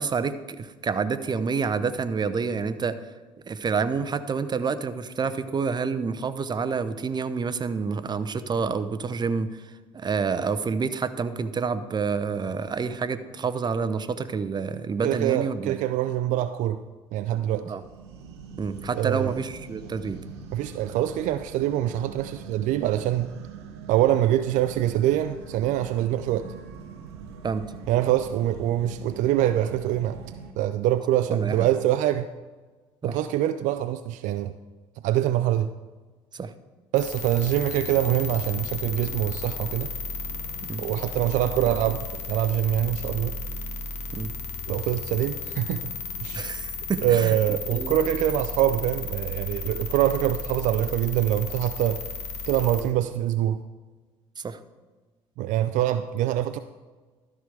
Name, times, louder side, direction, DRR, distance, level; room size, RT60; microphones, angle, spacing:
voice 1, 0.0-3.0 3.5-9.5 9.9-15.8 17.6-17.8 18.6-20.2 27.4-27.6 31.3-31.7 33.0-33.2 36.3-36.5 40.7-40.8 44.1-44.3 46.3-47.4 47.7-48.0 54.4-54.6, right 5 dB, 30° right, 12 dB, 0.7 m, -28 dB
voice 2, 15.0-16.8 17.1-17.7 18.9-19.4 20.5-23.3 23.9-26.5 27.9-30.2 30.6-32.3 33.0-34.5 35.0-35.7 36.9-39.9 40.8-43.3 44.7-45.9 46.2-46.5 47.0-52.0 52.5-53.6 55.4-56.6, right 12 dB, 65° right, 11 dB, 0.4 m, -24 dB
sound 1, 17.8-30.5, right 6 dB, 85° right, 0.9 m, -42 dB
sound 2, 37.0-52.8, left 4 dB, 55° left, 1.4 m, -34 dB
12.5 x 4.9 x 4.8 m, 1.3 s
hypercardioid pair, 60°, 14 cm